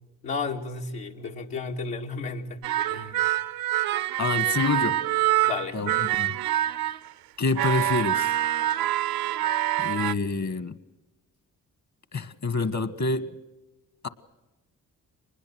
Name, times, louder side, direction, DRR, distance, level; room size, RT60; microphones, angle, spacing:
voice 1, 0.2-3.2 5.4-5.8, left 4 dB, 80° left, 1 dB, 2.4 m, -33 dB
sound 1, 2.6-7.1 7.5-10.1, right 14 dB, 80° right, 0.6 m, -26 dB
voice 2, 4.2-5.0 5.7-6.3 7.4-8.3 9.8-10.8 12.1-13.3 14.0-14.1, left 3 dB, 50° left, 14 dB, 1.6 m, -27 dB
24.0 x 20.5 x 6.3 m, 1.1 s
supercardioid pair, 60°, 36 cm